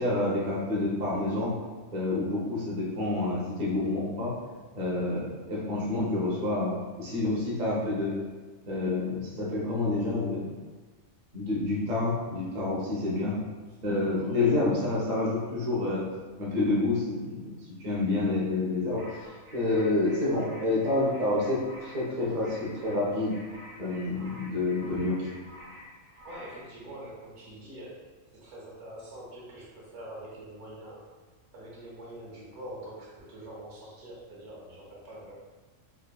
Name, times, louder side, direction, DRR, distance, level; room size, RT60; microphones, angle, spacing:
voice 1, 0.0-1.5 1.9-4.3 4.8-8.1 8.7-10.4 11.3-13.4 13.8-16.0 16.4-17.6 17.8-23.3 23.8-25.3, left 2 dB, 45° right, -6 dB, 0.7 m, -28 dB
voice 2, 14.1-14.6 26.2-31.0 31.5-35.3, right 1 dB, 65° right, -5 dB, 1.0 m, -44 dB
sound 1, 19.0-26.6, left 1 dB, 90° right, 1.3 m, -49 dB
3.4 x 2.0 x 2.2 m, 1.3 s
omnidirectional pair, 1.3 m